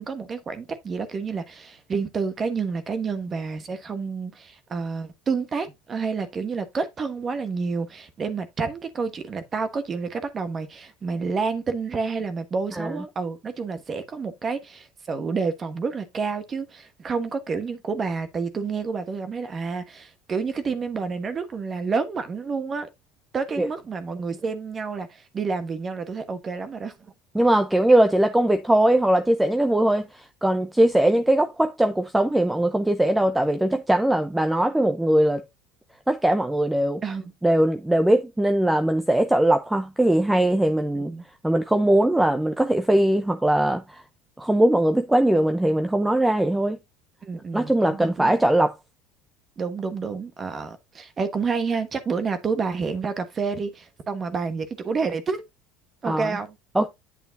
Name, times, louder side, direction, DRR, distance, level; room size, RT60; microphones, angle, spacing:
voice 1, 0.0-22.9 23.3-27.1 37.0-37.3 40.9-41.2 47.2-48.4 49.6-55.4 56.0-56.5, right 5 dB, 30° right, 1.2 m, -29 dB
voice 2, 27.3-30.1 30.4-35.4 36.1-37.0 37.4-41.1 41.4-43.8 44.4-46.8 47.5-48.7 56.1-56.3 56.8-56.9, right 1 dB, 5° right, 0.6 m, -20 dB
8.5 x 6.9 x 2.6 m
supercardioid pair, 95°, 0 cm